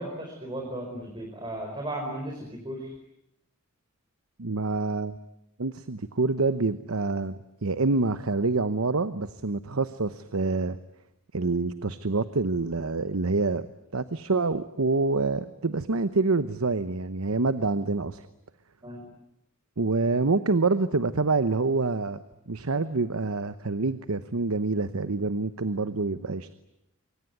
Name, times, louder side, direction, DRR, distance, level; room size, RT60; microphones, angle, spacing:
voice 1, 0.0-2.9 18.8-19.1, right 1 dB, 25° right, 1 dB, 4.9 m, -35 dB
voice 2, 4.4-5.2 5.6-10.8 11.3-13.6 13.9-18.3 19.8-22.2 22.5-26.5, right 3 dB, 85° right, 12 dB, 1.0 m, -26 dB
25.0 x 24.5 x 9.4 m, 0.83 s
head